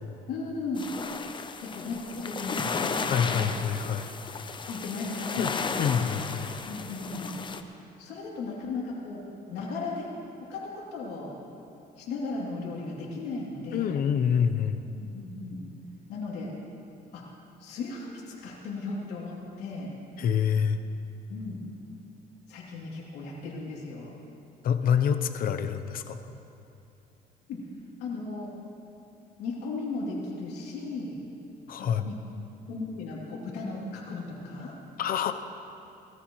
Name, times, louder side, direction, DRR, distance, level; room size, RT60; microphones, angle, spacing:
voice 1, 0.3-0.9 1.6-3.6 4.6-5.9 6.7-7.3 8.0-9.2 9.5-10.1 10.5-11.3 12.0-13.9 14.9-15.6 16.1-16.5 17.1-17.2 17.6-19.9 21.3-21.6 22.5-24.1 27.5-27.6 28.0-28.5 29.4-31.2 31.8-32.1 32.7-34.7, left 3 dB, 85° left, -4 dB, 3.0 m, -36 dB
sound 1, 0.8-7.6, left 5 dB, 30° left, 0.7 m, -34 dB
voice 2, 3.0-4.1 5.4-5.5 5.8-6.5 13.7-14.9 20.2-20.8 24.6-26.3 31.7-32.1 35.0-35.3, left 8 dB, 60° left, 8 dB, 0.8 m, -26 dB
19.5 x 14.0 x 3.2 m, 2.8 s
cardioid pair, 110°, 17 cm